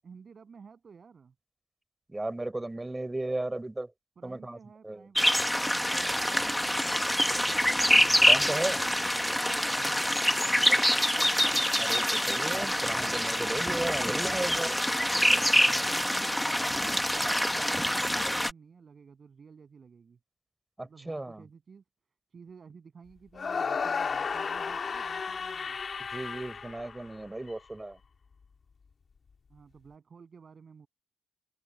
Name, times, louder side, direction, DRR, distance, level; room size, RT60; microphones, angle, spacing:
voice 1, 0.0-1.3 4.2-7.6 9.6-10.8 15.4-20.2 20.8-21.8 22.3-25.8 29.5-30.9, right 5 dB, 45° right, 7.9 m, -53 dB
voice 2, 2.1-3.9 4.2-4.6 4.8-5.0 8.2-8.9 11.8-14.8 20.8-21.4 26.1-28.0, right 2 dB, 15° right, 3.9 m, -35 dB
sound 1, 5.1-18.5, equal, 5° left, 1.2 m, -26 dB
sound 2, 23.3-27.5, left 5 dB, 45° left, 2.8 m, -33 dB
cardioid pair, 105°, 0 cm